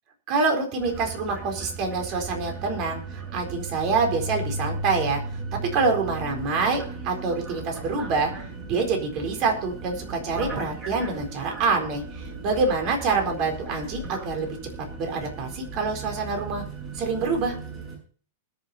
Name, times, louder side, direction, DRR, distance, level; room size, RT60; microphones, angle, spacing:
voice 1, 0.3-5.2 5.5-8.3 8.7-14.5 15.0-16.6 16.9-17.6, right 4 dB, 40° right, 3 dB, 4.2 m, -26 dB
sound 1, 0.8-18.0, right 3 dB, 25° right, 7.0 m, -36 dB
20.5 x 7.5 x 4.2 m, 0.43 s
supercardioid pair, 150°, 0 cm